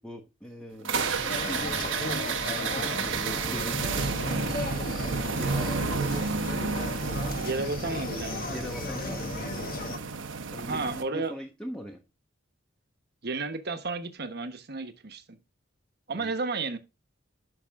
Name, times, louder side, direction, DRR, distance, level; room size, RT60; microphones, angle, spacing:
voice 1, 0.0-4.9 5.3-7.0 8.5-9.7 10.5-12.0 16.1-16.3, equal, 5° left, 0.9 m, -41 dB
sound 1, 0.8-11.0, right 4 dB, 85° right, 1.1 m, -31 dB
sound 2, 0.9-10.0, left 3 dB, 50° left, 1.0 m, -36 dB
voice 2, 7.3-8.7 10.7-11.3 13.2-15.2 16.1-16.8, right 3 dB, 60° right, 1.2 m, -32 dB
11.0 x 5.9 x 3.6 m
head